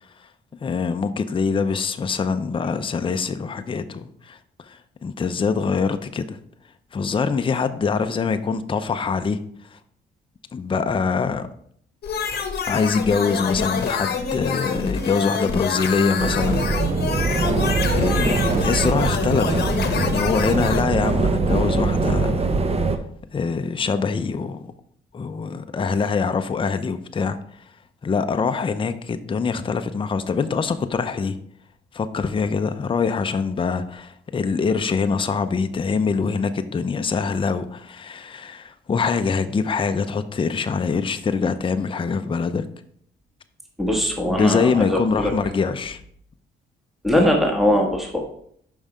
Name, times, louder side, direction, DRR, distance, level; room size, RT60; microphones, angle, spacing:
voice 1, 0.6-4.4 4.6-6.4 6.9-9.4 9.7-9.8 10.5-11.5 12.7-16.6 17.9-22.4 22.8-22.9 23.3-24.6 25.1-27.4 28.0-31.4 31.9-42.7 44.3-46.0, left 5 dB, 25° left, 8 dB, 0.6 m, -24 dB
sound 1, 12.0-20.8, left 5 dB, 55° left, 1.0 m, -26 dB
sound 2, 16.2-23.0, right 3 dB, 30° right, 0.8 m, -22 dB
voice 2, 43.8-45.3 47.0-48.2, left 1 dB, ahead, 1 dB, 1.5 m, -21 dB
5.5 x 5.4 x 5.0 m, 0.65 s
cardioid pair, 90°, 20 cm